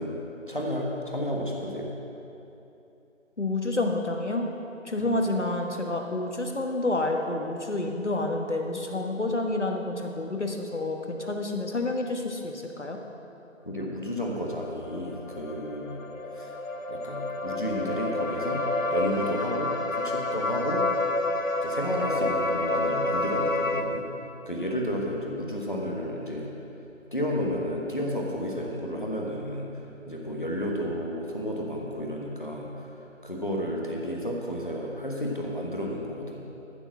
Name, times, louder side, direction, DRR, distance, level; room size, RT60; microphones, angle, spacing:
voice 1, 0.0-2.0 5.0-5.1 13.6-16.1 16.3-16.5 16.9-20.9 21.6-24.1 24.5-26.5 27.1-29.8 30.1-36.4, equal, 40° left, -2 dB, 1.3 m, -32 dB
voice 2, 3.4-4.5 4.8-13.0, left 2 dB, 60° left, 3 dB, 1.5 m, -29 dB
sound 1, 14.5-23.8, left 2 dB, 85° left, 1.0 m, -29 dB
14.0 x 7.0 x 6.0 m, 3.0 s
figure-of-eight pair, 175°, 39 cm